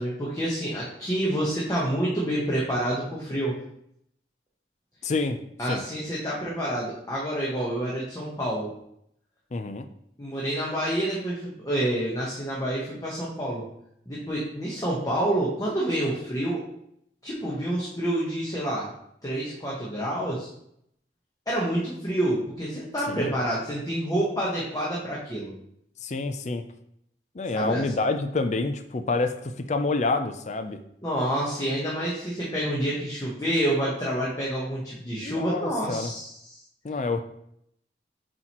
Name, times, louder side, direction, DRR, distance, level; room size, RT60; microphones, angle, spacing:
voice 1, 0.0-3.5 5.6-8.7 10.2-13.6 14.1-16.6 17.2-18.9 19.2-20.5 21.5-25.5 27.5-27.8 31.0-36.3, right 1 dB, 20° left, -5 dB, 1.1 m, -28 dB
voice 2, 5.0-5.4 5.7-5.8 9.5-9.9 23.1-23.3 26.0-26.6 27.3-30.8 35.2-36.1 36.8-37.2, left 3 dB, 40° left, 8 dB, 0.4 m, -27 dB
7.6 x 4.3 x 3.0 m, 0.73 s
head